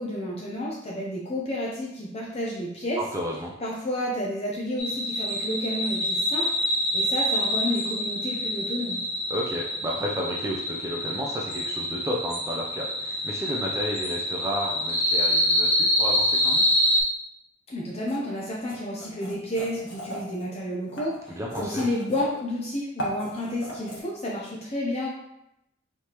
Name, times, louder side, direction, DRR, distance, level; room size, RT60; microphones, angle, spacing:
voice 1, 0.0-3.0 3.6-9.0 17.7-25.1, left 1 dB, 35° left, -3 dB, 0.6 m, -31 dB
voice 2, 3.1-3.5 9.3-16.7 21.3-21.9, equal, 15° right, -2 dB, 0.5 m, -32 dB
sound 1, 4.8-17.0, equal, 70° left, 1.4 m, -26 dB
sound 2, 18.1-18.2 18.7-20.4 20.9-22.4 22.7-24.0, equal, 85° left, 1.3 m, -36 dB
4.7 x 3.4 x 2.9 m, 0.85 s
head